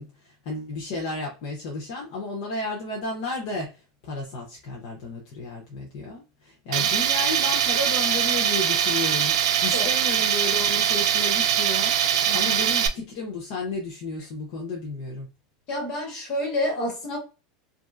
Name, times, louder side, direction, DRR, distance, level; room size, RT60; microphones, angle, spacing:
voice 1, 0.0-15.3, left 3 dB, 50° left, 0.8 m, -33 dB
Tools, 6.7-12.9, right 9 dB, 90° right, 0.4 m, -22 dB
voice 2, 15.7-17.2, left 1 dB, 30° left, 1.5 m, -29 dB
3.1 x 2.6 x 2.4 m
supercardioid pair, 180°, 3 cm